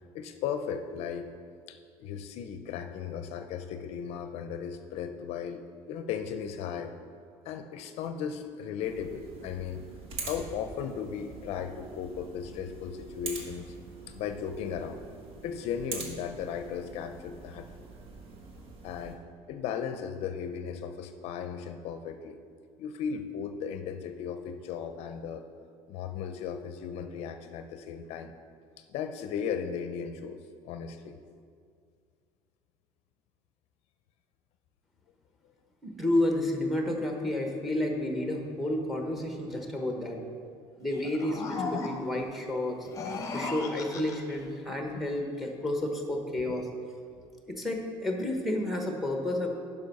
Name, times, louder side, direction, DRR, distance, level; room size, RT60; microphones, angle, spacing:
voice 1, 0.1-1.3 1.7-5.6 5.9-6.9 7.4-9.8 10.2-13.7 14.1-15.0 15.4-17.7 18.8-19.2 19.5-22.4 22.8-25.4 25.9-28.3 28.9-30.4 30.6-31.2 44.9-45.1, left 7 dB, 60° left, 8 dB, 0.5 m, -36 dB
sound 1, 8.8-19.2, right 3 dB, 50° right, 1.4 m, -44 dB
voice 2, 35.8-40.2 40.8-42.9 43.3-46.7 47.5-49.5, left 1 dB, ahead, 2 dB, 0.9 m, -31 dB
sound 2, 40.9-42.3 42.8-44.4, left 4 dB, 25° left, 0.7 m, -36 dB
10.5 x 5.4 x 5.3 m, 2.2 s
cardioid pair, 165°, 12 cm